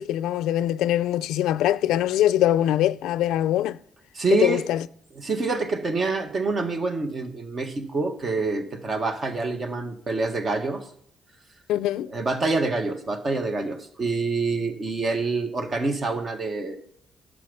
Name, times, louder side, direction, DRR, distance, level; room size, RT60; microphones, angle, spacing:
voice 1, 0.0-3.8 4.3-4.8 11.7-12.1, left 12 dB, 90° left, 0.4 m, -23 dB
voice 2, 4.1-4.6 5.1-10.9 12.1-16.8, right 3 dB, 45° right, 1.7 m, -26 dB
11.5 x 6.9 x 5.6 m
cardioid pair, 90°, 0 cm